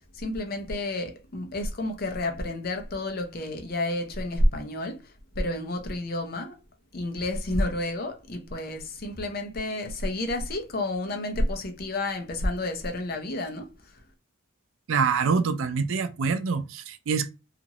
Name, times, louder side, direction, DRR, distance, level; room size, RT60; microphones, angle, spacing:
voice 1, 0.1-6.6 6.9-13.7, left 1 dB, 45° left, 0.6 m, -30 dB
voice 2, 14.9-17.3, right 5 dB, 70° right, 0.4 m, -25 dB
2.8 x 2.5 x 2.8 m
head